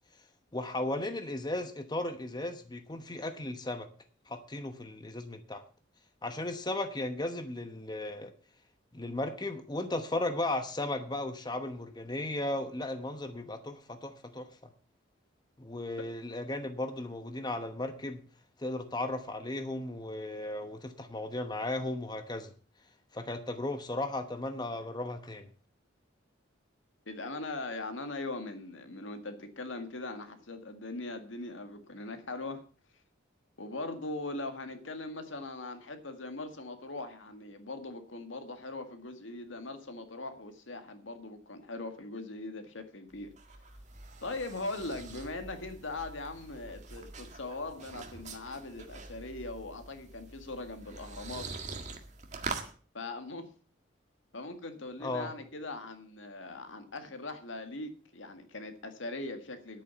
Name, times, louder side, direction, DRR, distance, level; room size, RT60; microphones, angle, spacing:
voice 1, 0.5-3.9 4.3-5.6 6.2-8.3 8.9-14.5 15.6-18.2 18.6-22.5 23.1-25.5 55.0-55.3, left 2 dB, 20° left, 8 dB, 1.0 m, -35 dB
voice 2, 27.1-32.6 33.6-43.3 44.2-51.5 52.9-53.5 54.3-59.8, left 2 dB, 75° left, 7 dB, 1.9 m, -40 dB
sound 1, 43.1-52.7, right 3 dB, 40° right, 1.8 m, -44 dB
10.5 x 8.7 x 7.0 m, 0.40 s
head